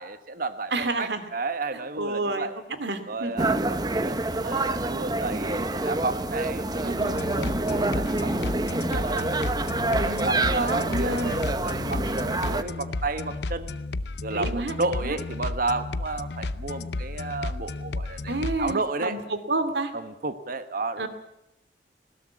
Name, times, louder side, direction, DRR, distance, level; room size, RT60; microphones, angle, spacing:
voice 1, 0.0-2.5 3.1-6.9 7.3-9.4 9.8-13.8 14.2-19.2 19.9-21.1, right 3 dB, 50° right, 10 dB, 1.3 m, -32 dB
voice 2, 0.7-1.3 1.7-2.5 2.8-3.6 6.8-7.2 9.9-11.4 14.3-15.2 18.3-19.9 21.0-21.1, right 2 dB, 70° right, 10 dB, 2.4 m, -30 dB
sound 1, 3.4-12.6, right 2 dB, 25° right, 0.9 m, -27 dB
sound 2, 7.1-18.7, left 2 dB, 70° left, 0.7 m, -33 dB
20.0 x 17.5 x 8.4 m, 0.85 s
head